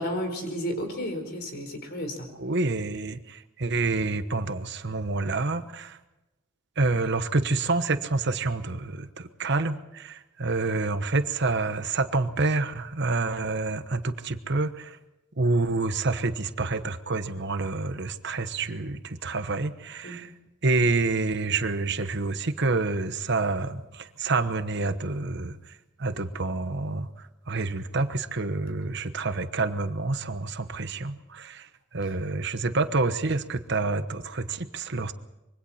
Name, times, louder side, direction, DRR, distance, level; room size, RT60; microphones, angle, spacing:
voice 1, 0.0-2.3 20.0-20.2, equal, 50° left, 5 dB, 4.5 m, -32 dB
voice 2, 2.4-6.0 6.8-15.0 15.4-20.3 20.6-25.6 26.0-35.1, right 3 dB, 55° right, 10 dB, 1.1 m, -28 dB
26.0 x 23.5 x 4.4 m, 0.97 s
head